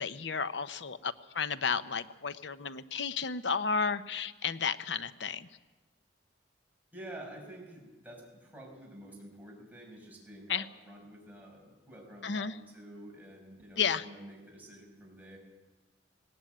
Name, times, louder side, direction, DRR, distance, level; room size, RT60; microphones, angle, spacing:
voice 1, 0.0-5.5 10.5-10.6 12.2-12.6 13.8-14.0, left 5 dB, 65° left, 12 dB, 0.9 m, -32 dB
voice 2, 6.9-15.4, right 1 dB, 10° right, -1 dB, 5.9 m, -49 dB
18.5 x 17.5 x 9.2 m, 1.2 s
head